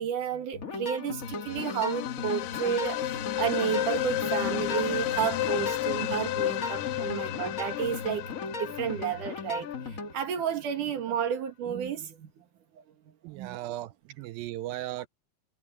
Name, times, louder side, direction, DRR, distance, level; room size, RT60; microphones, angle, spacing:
voice 1, 0.0-12.4 12.7-12.8 13.3-13.6, right 9 dB, 60° right, 3.2 m, -32 dB
sound 1, 0.5-10.1, left 4 dB, 55° left, 0.9 m, -37 dB
sound 2, 1.1-9.9, left 14 dB, 75° left, 2.3 m, -32 dB
voice 2, 13.2-15.1, right 15 dB, 80° right, 2.2 m, -37 dB
omnidirectional pair, 4.4 m